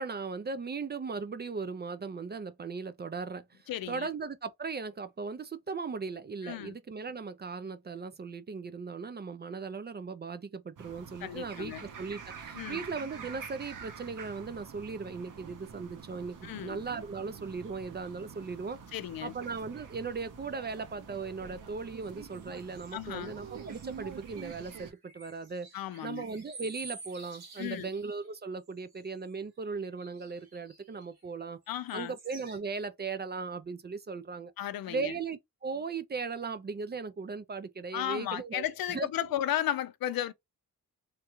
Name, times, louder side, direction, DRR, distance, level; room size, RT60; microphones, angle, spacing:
voice 1, 0.0-18.8 19.2-31.6 31.9-34.5 34.9-39.1, right 4 dB, 30° right, 0.4 m, -38 dB
voice 2, 3.7-4.1 6.4-6.7 11.2-11.8 12.5-12.8 16.4-16.8 18.9-19.3 22.9-23.4 25.7-26.2 27.6-27.9 31.7-32.1 34.6-35.1 37.9-40.3, left 12 dB, 70° left, 0.5 m, -34 dB
sound 1, 10.8-24.9, right 6 dB, 60° right, 0.8 m, -47 dB
sound 2, 22.0-28.3 28.7-29.3 30.0-31.4 31.9-32.6, right 3 dB, 90° right, 1.7 m, -51 dB
3.2 x 2.4 x 2.9 m
cardioid pair, 80°, 36 cm